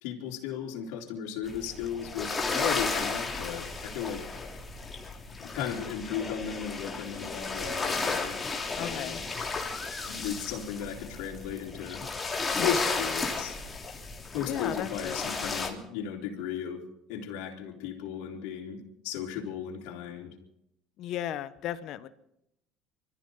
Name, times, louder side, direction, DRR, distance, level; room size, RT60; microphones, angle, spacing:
voice 1, 0.0-4.2 5.4-8.5 8.8-9.3 10.1-12.1 12.6-13.6 14.3-16.8 17.1-20.3, left 8 dB, 80° left, -1 dB, 3.8 m, -35 dB
sound 1, 1.5-15.7, left 4 dB, 20° left, 3.3 m, -34 dB
voice 2, 8.8-9.2 14.4-15.2 21.0-22.1, left 12 dB, 65° left, 13 dB, 1.2 m, -35 dB
25.0 x 14.0 x 3.9 m, 0.80 s
supercardioid pair, 90°, 0 cm